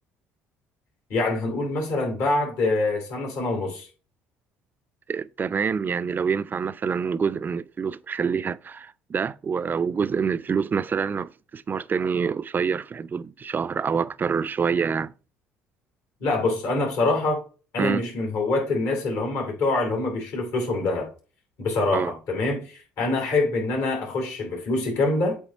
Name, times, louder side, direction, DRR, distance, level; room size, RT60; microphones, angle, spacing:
voice 1, 1.1-3.9 16.2-17.4 17.7-21.1 21.6-25.4, left 2 dB, 65° left, 3.2 m, -25 dB
voice 2, 5.1-15.1 17.8-18.0 21.9-22.1, right 6 dB, 35° right, 0.5 m, -26 dB
8.2 x 3.1 x 4.3 m
hypercardioid pair, 65°, 6 cm